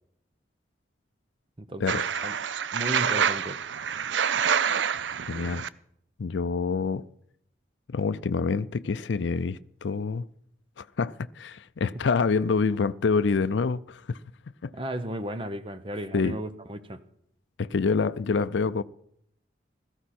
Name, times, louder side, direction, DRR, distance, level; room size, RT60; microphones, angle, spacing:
voice 1, 1.6-2.3 2.7-3.6 14.7-17.0, right 1 dB, 30° right, 0.8 m, -35 dB
sound 1, 1.9-5.7, right 7 dB, 85° right, 0.5 m, -27 dB
voice 2, 5.3-5.6 6.2-7.0 7.9-10.3 10.8-14.2 14.6-14.7 16.1-16.4 17.6-18.8, left 4 dB, 80° left, 0.5 m, -26 dB
16.0 x 14.0 x 4.3 m
head